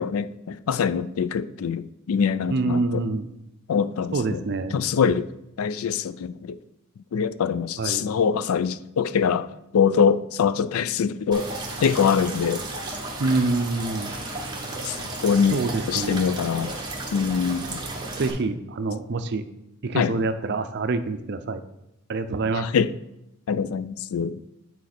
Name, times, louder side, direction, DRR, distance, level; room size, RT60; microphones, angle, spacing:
voice 1, 0.0-3.0 3.7-4.4 4.7-5.3 5.6-6.6 7.1-11.5 11.8-12.6 14.8-15.6 15.9-16.7 17.1-17.8 19.9-20.1 22.5-22.9 23.5-24.4, left 6 dB, 80° left, 0.4 m, -24 dB
voice 2, 2.5-3.3 4.1-4.7 7.8-8.1 13.2-14.1 15.5-16.3 18.2-19.4 19.8-21.6 22.1-22.7, right 3 dB, 55° right, 0.5 m, -26 dB
sound 1, 11.3-18.3, right 2 dB, 20° right, 1.2 m, -33 dB
9.0 x 4.2 x 4.3 m
head